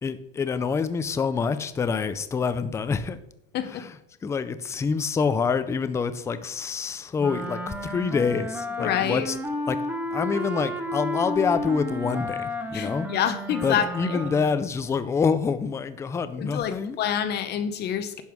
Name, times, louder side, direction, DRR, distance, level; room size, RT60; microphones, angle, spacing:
voice 1, 0.0-3.2 3.6-3.9 4.2-9.3 9.7-9.8 10.1-13.1 13.6-17.0, left 5 dB, 10° left, 12 dB, 0.4 m, -26 dB
voice 2, 3.5-3.9 8.8-9.3 12.7-14.3 16.4-18.2, left 9 dB, 35° left, 9 dB, 0.8 m, -27 dB
Wind instrument woodwind instrument, 7.2-14.6, equal, 5° right, 0.9 m, -32 dB
10.5 x 5.4 x 6.1 m, 0.81 s
supercardioid pair, 155°, 30 cm